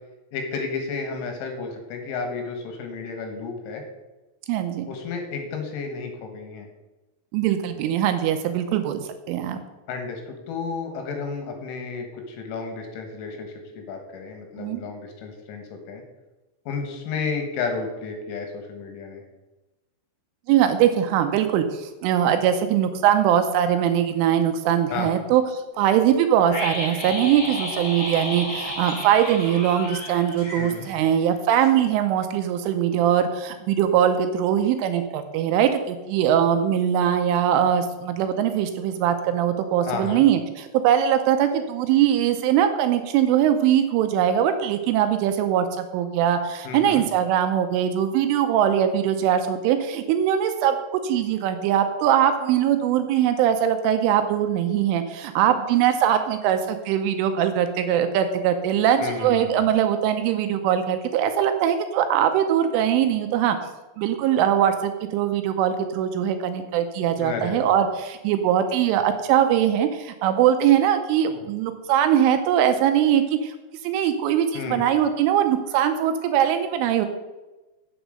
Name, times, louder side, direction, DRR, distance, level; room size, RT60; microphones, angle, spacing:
voice 1, 0.3-3.8 4.9-6.7 9.9-16.0 16.7-19.2 24.9-25.1 30.6-30.8 39.8-40.2 46.7-47.0 59.0-59.5 67.2-67.7 74.6-74.8, left 4 dB, 75° left, 4 dB, 3.8 m, -32 dB
voice 2, 4.5-4.9 7.3-9.6 14.6-14.8 20.5-50.8 51.0-63.6 64.0-73.5 73.8-77.1, right 10 dB, 85° right, 7 dB, 3.0 m, -21 dB
sound 1, 26.5-31.3 31.6-31.7, left 1 dB, 30° left, 1.9 m, -32 dB
8.1 x 7.9 x 6.5 m, 1.1 s
omnidirectional pair, 6.0 m